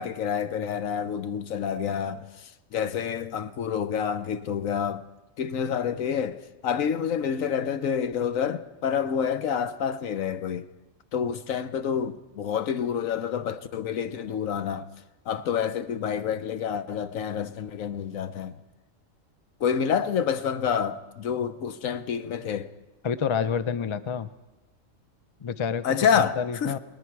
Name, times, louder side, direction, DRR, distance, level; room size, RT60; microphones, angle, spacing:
voice 1, 0.0-5.0 5.4-10.7 11.1-14.9 15.3-18.5 19.6-22.7 25.8-26.7, left 7 dB, 75° left, 1.2 m, -28 dB
voice 2, 23.0-24.3 25.4-25.8 26.1-26.8, left 7 dB, 35° left, 0.5 m, -28 dB
29.5 x 19.5 x 4.7 m
omnidirectional pair, 1.4 m